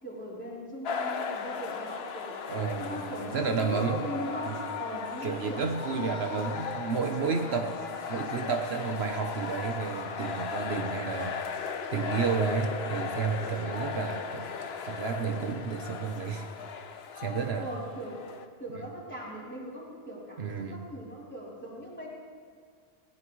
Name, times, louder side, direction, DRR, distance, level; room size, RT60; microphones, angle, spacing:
voice 1, 0.0-2.4 2.8-5.7 17.6-18.2 18.6-22.1, equal, 10° left, -6 dB, 3.5 m, -39 dB
sound 1, 0.8-18.5, left 5 dB, 70° left, 1.0 m, -37 dB
voice 2, 2.5-4.0 4.5-4.6 5.2-7.8 8.1-11.3 11.9-14.5 14.8-16.5 17.2-17.7 20.4-20.8, right 5 dB, 70° right, 4 dB, 1.2 m, -31 dB
20.0 x 17.0 x 3.2 m, 2.1 s
omnidirectional pair, 1.1 m